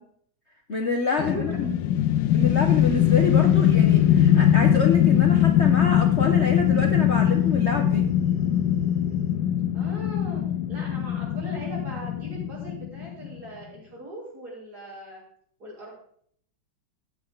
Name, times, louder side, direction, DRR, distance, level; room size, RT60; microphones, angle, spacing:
voice 1, 0.7-1.7 2.3-8.1, left 4 dB, 45° left, 3 dB, 1.1 m, -27 dB
sound 1, 1.2-13.4, left 11 dB, 80° left, 1.3 m, -21 dB
sound 2, 2.4-9.3, left 1 dB, 20° right, 5.9 m, -41 dB
voice 2, 9.7-10.4 10.7-15.2 15.6-15.9, right 1 dB, 55° right, -5 dB, 6.2 m, -39 dB
14.5 x 8.8 x 3.9 m, 0.63 s
omnidirectional pair, 2.1 m